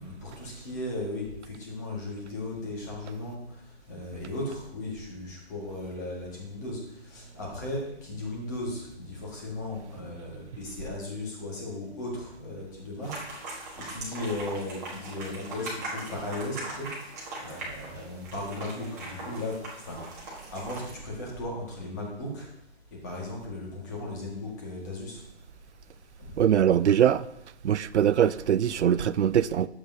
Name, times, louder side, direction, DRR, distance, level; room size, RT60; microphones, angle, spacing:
voice 1, 0.0-3.4 3.9-16.9 17.4-19.5 19.8-20.0 20.5-22.5 23.0-25.2, left 2 dB, 15° left, 1.7 m, -36 dB
sound 1, 13.0-20.9, right 2 dB, 15° right, 1.4 m, -40 dB
voice 2, 26.4-27.3 27.6-29.7, right 9 dB, 80° right, 0.5 m, -22 dB
11.5 x 7.7 x 2.7 m
hypercardioid pair, 175°, 34 cm